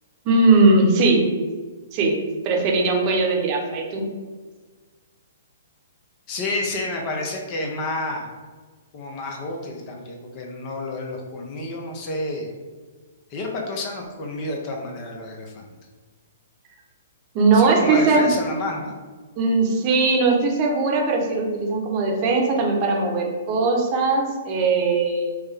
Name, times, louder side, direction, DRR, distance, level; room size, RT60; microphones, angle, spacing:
voice 1, 0.2-1.2 1.9-2.2 2.4-4.0 17.3-18.3 19.4-25.3, right 3 dB, 35° right, 0 dB, 0.9 m, -19 dB
voice 2, 6.3-8.3 8.9-12.5 13.3-15.6 17.5-18.9, left 2 dB, 35° left, 1 dB, 0.7 m, -30 dB
4.7 x 2.2 x 3.4 m, 1.4 s
figure-of-eight pair, 120°, 0 cm